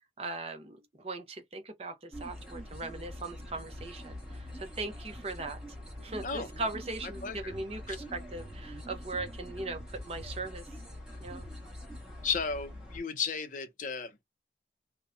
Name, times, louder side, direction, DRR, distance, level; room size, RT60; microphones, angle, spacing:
voice 1, 0.2-5.6 6.0-10.6 11.2-11.5, right 2 dB, 35° right, 0.6 m, -39 dB
sound 1, 2.1-13.0, equal, 5° right, 1.0 m, -44 dB
voice 2, 6.2-6.7 7.2-7.5 12.2-14.2, left 6 dB, 45° left, 0.5 m, -34 dB
2.7 x 2.1 x 2.4 m
head